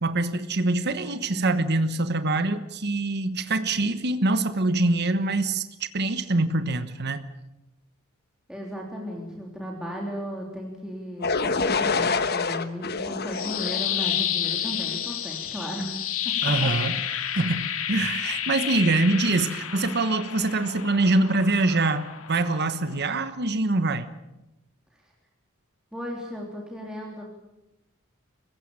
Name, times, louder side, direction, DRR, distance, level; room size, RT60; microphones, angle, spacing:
voice 1, 0.0-7.2 16.4-17.0 17.3-24.1, right 2 dB, 50° right, 11 dB, 1.2 m, -24 dB
voice 2, 8.5-16.0 16.2-16.7 25.9-27.2, equal, 5° right, -1 dB, 3.3 m, -35 dB
sound 1, 11.2-15.1, left 4 dB, 50° left, 1.3 m, -27 dB
sound 2, 13.1-23.2, left 10 dB, 75° left, 2.2 m, -31 dB
26.0 x 16.0 x 8.8 m, 0.95 s
head